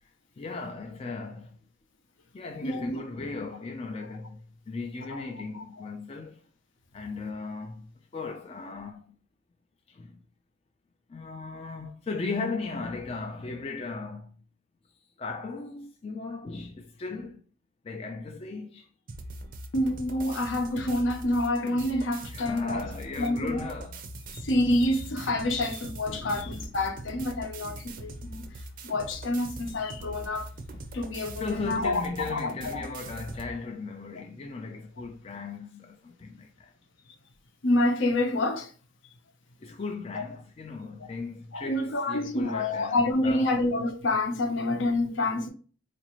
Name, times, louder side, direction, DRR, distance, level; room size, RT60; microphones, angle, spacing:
voice 1, 0.4-1.6 2.3-6.4 6.9-9.1 9.9-10.2 11.1-14.3 15.2-17.4 17.8-18.9 22.3-24.3 26.1-26.9 27.7-28.1 29.6-29.7 31.2-36.7 39.6-43.6, left 4 dB, 30° left, 0.3 m, -37 dB
voice 2, 2.6-3.0 5.1-5.2 5.5-5.6 19.7-22.8 23.2-23.7 24.3-28.4 28.8-30.5 30.9-32.0 32.3-32.8 37.6-38.7 41.5-45.5, left 1 dB, 65° left, 0.7 m, -27 dB
sound 1, 19.1-33.5, right 1 dB, 45° right, 0.5 m, -42 dB
4.0 x 2.5 x 3.0 m
head